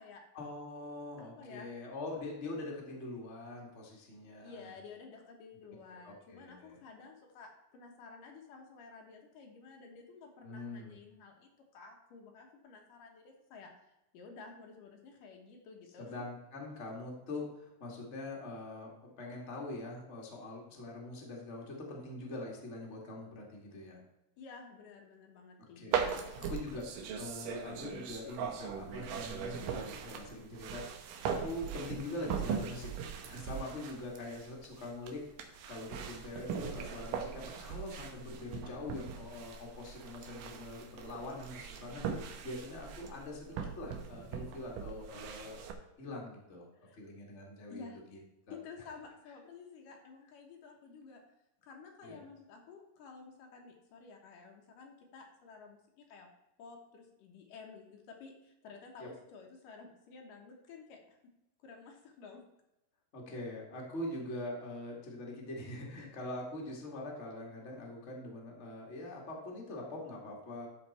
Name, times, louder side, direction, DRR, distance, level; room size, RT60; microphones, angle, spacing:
voice 1, 0.3-4.7 6.0-6.8 10.4-11.0 16.0-24.0 25.7-32.9 33.2-45.6 46.0-46.7 46.9-48.2 48.5-48.6 52.0-52.2 59.0-59.1 63.1-70.7, left 2 dB, 25° left, -2 dB, 1.7 m, -43 dB
voice 2, 1.2-1.7 4.4-13.7 14.1-16.1 24.4-26.3 46.8-47.0 47.7-48.0 48.5-51.2 51.6-56.3 56.6-61.2 61.6-62.4, left 5 dB, 75° left, 1 dB, 2.8 m, -52 dB
sound 1, 25.9-45.7, right 7 dB, 80° right, 2.5 m, -40 dB
12.5 x 4.7 x 4.3 m, 0.91 s
omnidirectional pair, 3.9 m